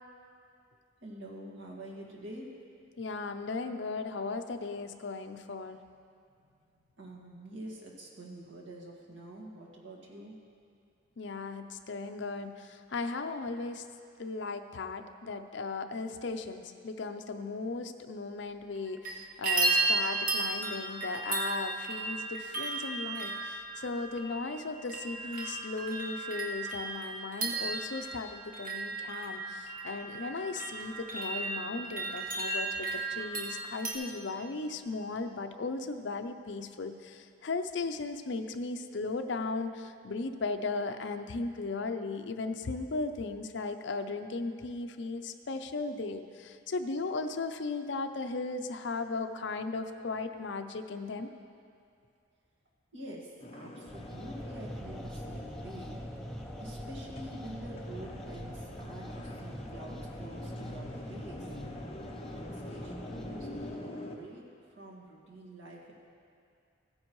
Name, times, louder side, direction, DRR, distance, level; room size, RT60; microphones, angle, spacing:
voice 1, 1.0-2.5 6.3-6.6 6.9-10.4 52.9-56.0 56.6-61.6 62.4-65.9, right 1 dB, 75° right, -3 dB, 1.9 m, -47 dB
voice 2, 3.0-5.8 11.2-13.8 14.2-51.3, left 3 dB, 60° left, 7 dB, 0.5 m, -36 dB
sound 1, 18.8-19.1 19.4-33.9, right 3 dB, 45° right, 1.2 m, -34 dB
sound 2, 53.4-64.2, left 1 dB, 30° left, 0.8 m, -45 dB
sound 3, 53.9-63.8, equal, ahead, 0.6 m, -43 dB
15.5 x 9.6 x 3.1 m, 2.4 s
head